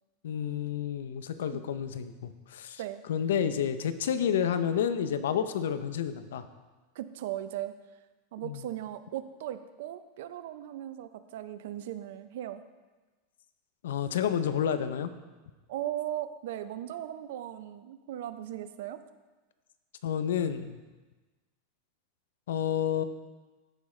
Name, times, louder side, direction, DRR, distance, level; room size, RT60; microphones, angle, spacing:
voice 1, 0.2-2.8 3.1-6.4 8.4-8.6 13.8-15.1 20.0-20.8 22.5-23.0, left 8 dB, 90° left, 11 dB, 0.6 m, -30 dB
voice 2, 6.9-7.7 8.3-12.6 15.7-19.0, right 12 dB, 75° right, 12 dB, 0.5 m, -38 dB
14.5 x 4.9 x 3.2 m, 1.2 s
supercardioid pair, 140°, 0 cm